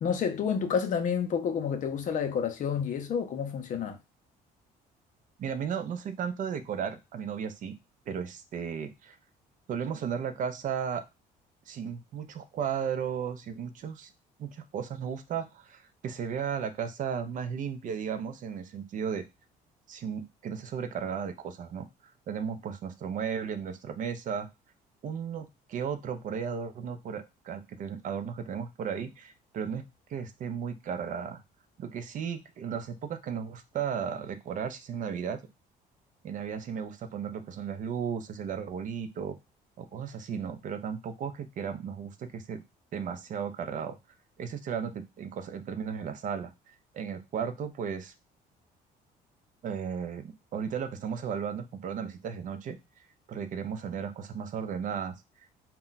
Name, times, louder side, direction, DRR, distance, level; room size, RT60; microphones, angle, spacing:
voice 1, 0.0-4.0, left 7 dB, 50° left, 0.5 m, -29 dB
voice 2, 5.4-7.7 8.1-9.2 9.7-11.0 11.7-14.1 14.4-19.2 19.9-21.9 22.3-24.5 25.0-29.8 30.1-31.4 31.8-35.4 36.2-39.4 39.8-42.6 42.9-44.0 44.4-46.5 46.9-48.1 49.6-55.2, right 7 dB, 50° right, 0.4 m, -35 dB
2.2 x 2.2 x 3.8 m
cardioid pair, 110°, 17 cm